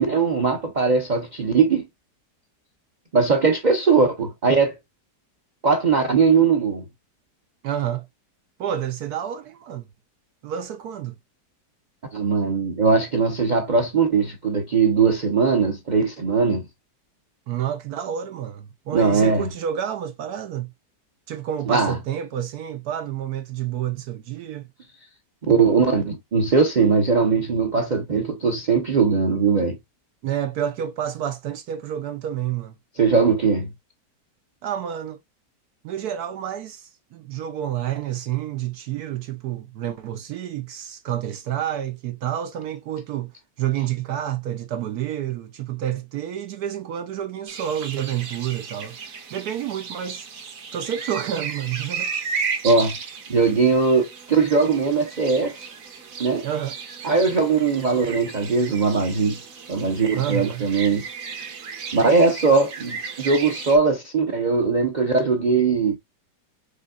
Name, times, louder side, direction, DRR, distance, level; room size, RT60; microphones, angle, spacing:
voice 1, 0.0-1.9 3.1-4.7 5.6-6.8 12.1-16.7 18.9-19.5 21.7-22.0 25.5-29.8 33.0-33.7 52.6-52.9 53.3-54.0 54.3-55.6 56.2-56.4 57.0-59.4 59.7-61.0 61.9-66.0, right 4 dB, 35° right, 0.7 m, -20 dB
voice 2, 7.6-8.1 8.6-9.9 10.4-11.2 17.5-20.7 21.3-24.7 30.2-32.7 34.6-35.2 35.8-49.0 49.3-50.3 50.7-52.1 56.4-56.8 60.1-60.7, right 10 dB, 70° right, 1.1 m, -29 dB
sound 1, 47.5-63.8, right 5 dB, 55° right, 1.4 m, -35 dB
5.1 x 3.5 x 2.3 m
omnidirectional pair, 1.9 m